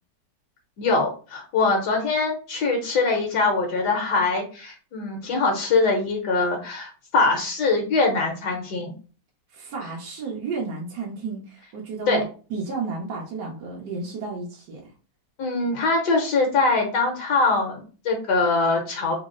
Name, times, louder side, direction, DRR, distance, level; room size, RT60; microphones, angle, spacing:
voice 1, 0.8-8.9 12.1-12.2 15.4-19.2, left 3 dB, 70° left, 1 dB, 1.5 m, -23 dB
voice 2, 9.5-14.8, right 4 dB, 80° right, -2 dB, 1.5 m, -32 dB
3.8 x 2.0 x 3.7 m, 0.37 s
omnidirectional pair, 1.9 m